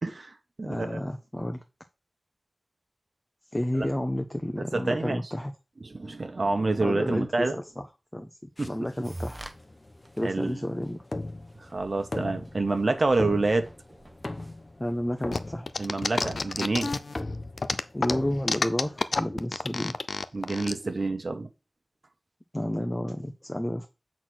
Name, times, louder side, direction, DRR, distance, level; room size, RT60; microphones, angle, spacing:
voice 1, 0.0-1.0 3.8-3.9 4.7-5.2 5.8-7.6 8.6-8.7 10.2-10.6 11.7-13.7 15.8-16.9 20.3-21.5, right 3 dB, 50° right, 1.2 m, -27 dB
voice 2, 0.6-1.6 3.5-5.5 6.8-7.9 8.1-8.3 8.6-9.4 10.2-11.0 14.8-15.7 17.9-19.9 22.5-23.9, left 1 dB, 15° left, 0.9 m, -31 dB
sound 1, 8.6-19.2, left 2 dB, 40° left, 0.9 m, -39 dB
sound 2, 9.0-9.5 10.1-10.2 10.8-10.9 11.2-11.3 11.6-15.3, right 1 dB, 20° right, 1.1 m, -44 dB
sound 3, 15.3-17.2 17.6-20.7, left 3 dB, 65° left, 0.6 m, -29 dB
8.2 x 4.2 x 6.2 m
wide cardioid pair, 85°, 0 cm